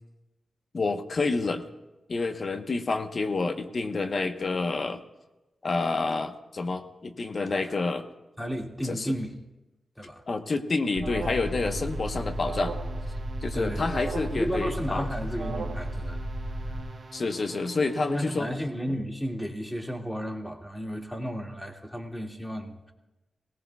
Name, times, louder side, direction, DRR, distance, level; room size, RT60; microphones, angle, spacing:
voice 1, 0.7-1.7 2.1-5.0 5.6-8.1 8.8-9.1 10.3-12.7 13.4-15.1 17.1-18.5, left 3 dB, 55° left, 7 dB, 1.0 m, -28 dB
voice 2, 8.4-9.3 10.0-10.2 13.5-14.0 14.3-17.0 18.1-22.9, equal, 10° left, 1 dB, 2.1 m, -33 dB
Alarm, 11.0-16.8, right 1 dB, 75° right, 1.1 m, -33 dB
sound 1, 11.2-18.8, right 4 dB, 55° right, 1.1 m, -46 dB
18.5 x 17.5 x 2.3 m, 1.1 s
cardioid pair, 55°, 0 cm